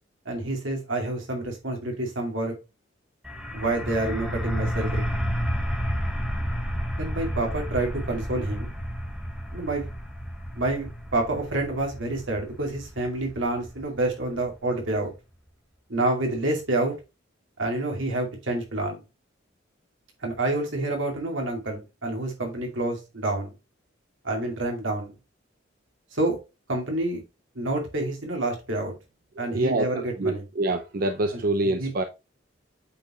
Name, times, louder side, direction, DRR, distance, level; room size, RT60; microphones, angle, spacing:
voice 1, 0.3-2.5 3.5-5.1 7.0-8.7 9.5-9.9 10.5-15.1 15.9-17.0 17.6-19.0 20.2-23.5 24.2-25.1 26.1-26.4 26.7-27.2 27.5-28.9 29.4-30.5 31.3-31.9, right 2 dB, 80° right, 2.5 m, -28 dB
sound 1, 3.2-14.7, equal, 5° right, 1.5 m, -31 dB
voice 2, 29.3-32.0, right 2 dB, 50° right, 0.6 m, -26 dB
8.5 x 4.6 x 3.0 m
head